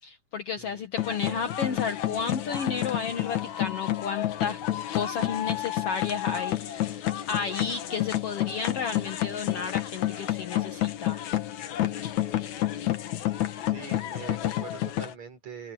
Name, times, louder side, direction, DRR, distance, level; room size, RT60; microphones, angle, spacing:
voice 1, 0.0-4.6 4.9-7.0 7.3-11.2, left 6 dB, 55° left, 2.2 m, -32 dB
sound 1, 1.0-15.1, left 13 dB, 75° left, 2.7 m, -30 dB
voice 2, 13.6-15.7, right 6 dB, 65° right, 6.4 m, -43 dB
omnidirectional pair, 3.4 m